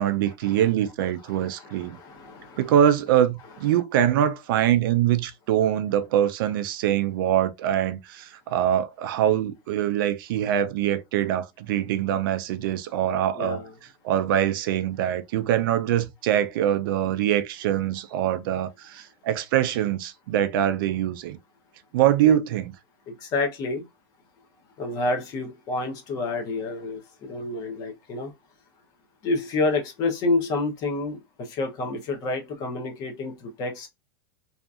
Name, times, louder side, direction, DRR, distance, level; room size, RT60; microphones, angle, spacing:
voice 1, 0.0-2.0 2.6-13.6 14.0-21.4 21.9-22.7, right 11 dB, 60° right, 0.4 m, -23 dB
voice 2, 1.3-2.7 13.3-13.7 22.3-22.4 23.1-23.9 24.8-28.3 29.2-33.9, left 3 dB, 30° left, 0.7 m, -29 dB
2.7 x 2.5 x 2.3 m
supercardioid pair, 170°, 13 cm